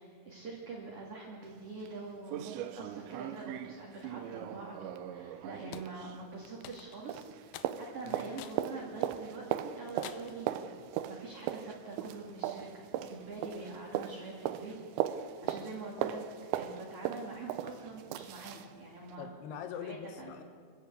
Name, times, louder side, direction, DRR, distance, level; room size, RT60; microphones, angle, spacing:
voice 1, 0.0-7.2 7.6-10.7 11.0-16.2 16.5-19.3 19.8-20.3, right 3 dB, 40° right, -2 dB, 2.7 m, -45 dB
sound 1, 1.4-1.5 1.9-2.0 2.3-6.8 7.1-18.7 19.1-19.2, right 11 dB, 80° right, 3.0 m, -38 dB
sound 2, 5.7-5.9 6.6-7.1 7.5-7.8 8.4-8.6 9.1-9.2 10.0-10.4, left 12 dB, 85° left, 2.0 m, -47 dB
voice 2, 19.2-20.4, left 8 dB, 70° left, 8 dB, 3.1 m, -43 dB
24.5 x 15.5 x 8.4 m, 2.1 s
omnidirectional pair, 5.2 m